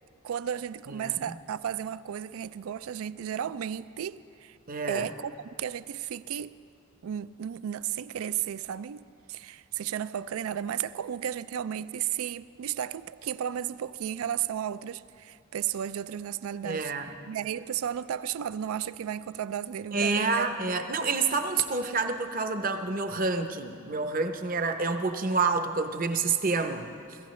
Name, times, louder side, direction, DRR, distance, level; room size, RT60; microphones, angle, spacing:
voice 1, 0.2-4.6 4.9-5.3 5.6-6.6 7.0-16.9 17.3-20.5, right 9 dB, 75° right, 16 dB, 0.3 m, -34 dB
voice 2, 0.9-1.3 4.7-5.0 16.6-17.2 19.9-27.2, right 4 dB, 40° right, 7 dB, 0.7 m, -28 dB
22.5 x 15.5 x 3.2 m, 2.5 s
head